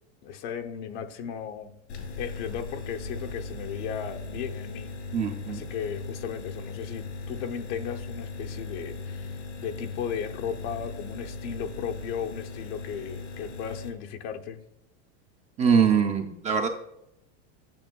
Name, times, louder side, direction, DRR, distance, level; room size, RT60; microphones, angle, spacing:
voice 1, 0.2-1.7 2.2-4.9 5.5-14.6, left 8 dB, 65° left, 6 dB, 0.8 m, -36 dB
sound 1, 1.9-13.9, left 3 dB, 80° left, 2.6 m, -38 dB
voice 2, 5.1-5.6 15.6-16.7, right 6 dB, 20° right, 3 dB, 0.4 m, -23 dB
9.0 x 6.2 x 2.2 m, 0.80 s
supercardioid pair, 145°, 36 cm